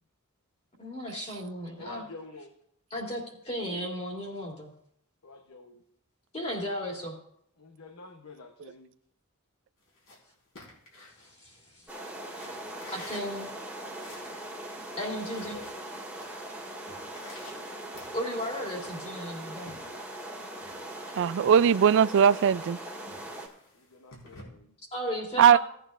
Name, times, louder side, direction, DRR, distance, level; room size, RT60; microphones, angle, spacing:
voice 1, 0.8-2.0 2.9-4.7 6.3-7.2 11.4-11.8 12.9-13.5 15.0-15.6 18.1-19.7 24.9-25.6, equal, 30° left, -2 dB, 2.9 m, -35 dB
voice 2, 1.8-2.5 5.2-5.8 7.6-8.9 13.4-13.5 15.5-15.8 19.8-20.1 23.7-24.7, left 2 dB, 85° left, 4 dB, 0.9 m, -48 dB
sound 1, 9.8-11.8 12.3-14.5 14.8-14.9 15.1-16.3 16.6-18.5 18.8-20.3 20.6-24.4, left 2 dB, 65° left, 3.9 m, -51 dB
sound 2, 11.9-23.5, right 1 dB, 5° right, 1.8 m, -40 dB
voice 3, 21.2-22.8 25.4-25.6, right 8 dB, 60° right, 19 dB, 0.3 m, -19 dB
17.0 x 9.1 x 2.5 m, 0.69 s
head